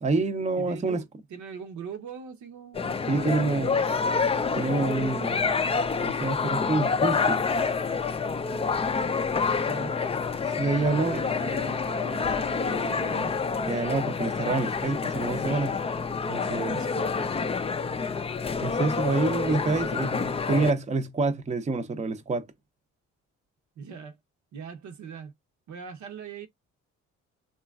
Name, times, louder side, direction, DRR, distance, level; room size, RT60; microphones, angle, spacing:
voice 1, 0.0-1.0 3.1-3.8 4.6-5.6 6.0-7.4 10.6-11.2 13.7-15.8 16.3-16.8 18.6-22.5, right 3 dB, 25° right, 0.6 m, -27 dB
voice 2, 0.5-4.2 9.5-10.0 10.7-13.3 16.6-17.3 23.8-24.2 24.5-25.3 25.7-26.5, right 6 dB, 70° right, 0.9 m, -41 dB
sound 1, 2.7-20.7, left 5 dB, 20° left, 0.4 m, -28 dB
2.9 x 2.3 x 2.3 m
cardioid pair, 90°, 30 cm